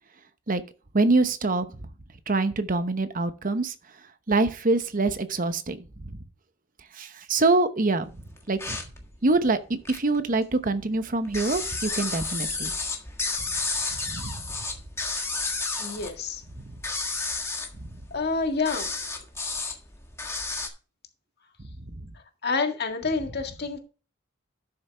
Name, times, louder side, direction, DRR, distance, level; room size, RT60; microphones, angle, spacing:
voice 1, 0.9-1.7 2.3-3.7 4.3-6.2 6.9-8.1 8.5-8.8 9.2-12.7 14.1-14.4 17.8-18.0 21.9-22.0, right 3 dB, 45° right, 0.9 m, -25 dB
Bats squeak in the small cave, 8.4-10.2 10.5-20.7, left 3 dB, 15° left, 1.6 m, -32 dB
voice 2, 15.8-16.4 18.1-18.9 22.4-23.8, left 4 dB, 55° left, 1.8 m, -28 dB
12.0 x 6.8 x 3.4 m
head